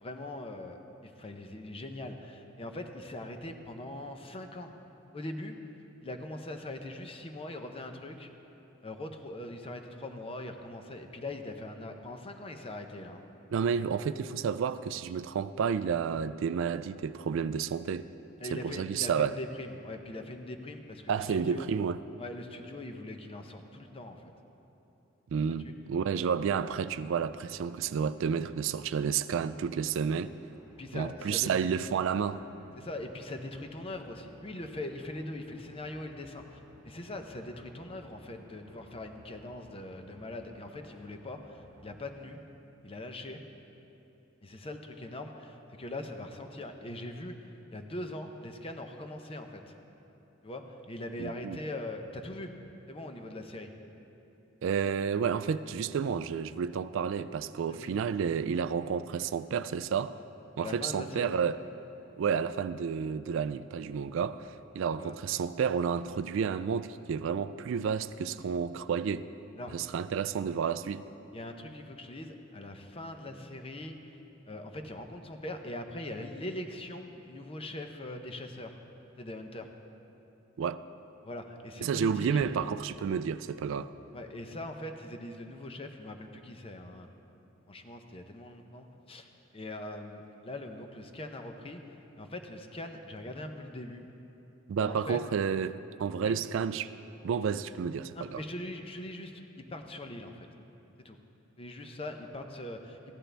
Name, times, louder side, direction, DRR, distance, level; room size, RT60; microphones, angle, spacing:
voice 1, 0.0-4.7 5.1-5.6 6.0-8.3 8.8-13.2 18.4-21.7 22.2-24.3 25.5-25.7 30.8-31.5 32.8-42.4 42.8-43.4 44.4-49.7 50.4-52.5 52.9-53.7 57.7-58.0 60.6-61.3 65.0-65.2 69.6-69.7 71.3-74.0 74.5-78.8 79.2-79.7 81.2-82.4 84.1-87.1 87.7-94.1 94.8-95.2 96.2-96.4 98.1-100.5 101.0-101.2 101.6-103.1, left 1 dB, 30° left, 0.7 m, -41 dB
voice 2, 13.5-18.1 18.5-19.3 21.1-22.0 25.3-30.3 30.9-32.4 51.2-51.6 54.6-60.2 60.6-61.6 62.2-69.3 69.7-71.0 80.6-80.8 81.8-83.9 94.7-96.9 97.2-98.4, right 6 dB, 70° right, 0.3 m, -31 dB
sound 1, 26.0-42.2, equal, 10° right, 1.2 m, -59 dB
15.0 x 11.5 x 3.4 m
head